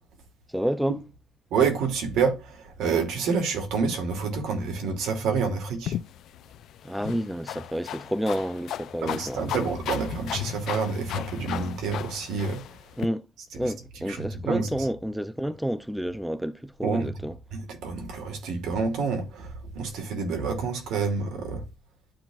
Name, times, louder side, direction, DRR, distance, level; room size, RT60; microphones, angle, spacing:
voice 1, 0.5-1.0 6.8-9.7 13.0-17.4, equal, 5° right, 0.4 m, -30 dB
voice 2, 1.5-6.0 9.0-12.6 13.6-13.7 14.1-14.7 16.8-17.1 17.5-21.6, right 5 dB, 85° right, 2.5 m, -28 dB
sound 1, 5.8-13.1, left 11 dB, 65° left, 0.4 m, -36 dB
12.0 x 4.4 x 2.4 m
cardioid pair, 160°, 0 cm